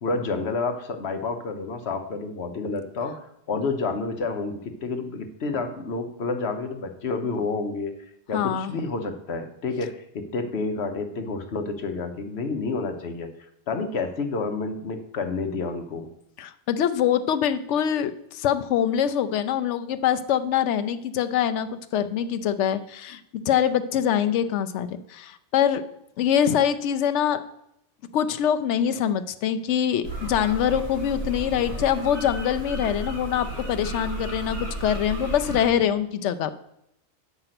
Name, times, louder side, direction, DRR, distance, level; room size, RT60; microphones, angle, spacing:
voice 1, 0.0-3.2 3.5-13.3 13.7-16.1, left 3 dB, 70° left, 7 dB, 1.2 m, -29 dB
voice 2, 8.3-8.7 16.4-23.2 23.5-25.8 26.2-27.4 28.1-36.5, left 9 dB, 90° left, 10 dB, 0.9 m, -24 dB
sound 1, 30.0-35.7, right 2 dB, 45° right, 2.5 m, -33 dB
7.8 x 5.9 x 5.8 m, 0.78 s
omnidirectional pair, 1.2 m